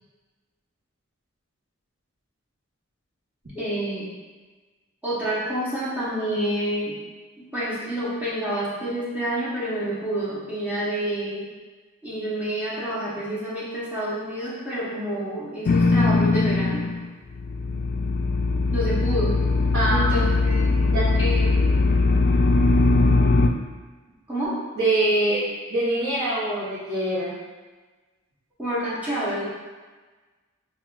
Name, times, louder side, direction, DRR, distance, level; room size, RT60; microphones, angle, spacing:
voice 1, 3.5-4.1 5.0-7.0 7.4-11.5 12.0-16.9 18.7-19.4 19.9-20.7 21.2-21.5 24.3-24.6 28.6-29.5, right 1 dB, 10° right, -10 dB, 1.0 m, -28 dB
sound 1, 15.7-17.1 17.3-23.5, left 3 dB, 45° left, 0.3 m, -20 dB
voice 2, 19.7-20.1 20.9-21.0 24.8-25.4 25.7-27.3, right 1 dB, 55° right, -11 dB, 1.0 m, -23 dB
5.6 x 2.3 x 2.4 m, 1.3 s
head